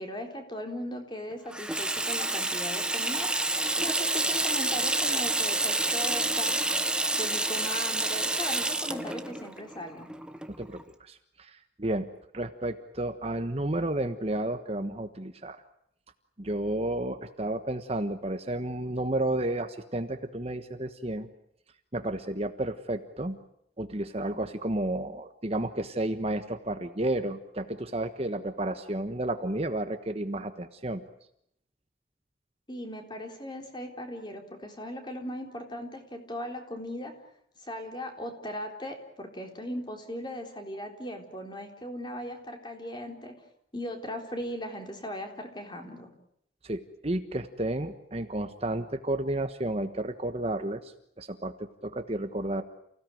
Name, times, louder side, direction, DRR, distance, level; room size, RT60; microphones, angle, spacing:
voice 1, 0.0-3.3 3.8-6.6 7.1-10.1 32.7-37.1 37.6-43.3 43.7-46.1, equal, 25° left, 4 dB, 3.9 m, -38 dB
Water tap faucet / Sink (filling or washing), 1.5-10.8, right 2 dB, 5° right, 1.1 m, -28 dB
voice 2, 10.6-12.1 12.3-15.6 16.4-21.3 21.9-23.4 23.8-31.0 46.6-52.6, right 1 dB, 30° right, 8 dB, 1.3 m, -32 dB
29.5 x 17.0 x 9.2 m, 0.74 s
head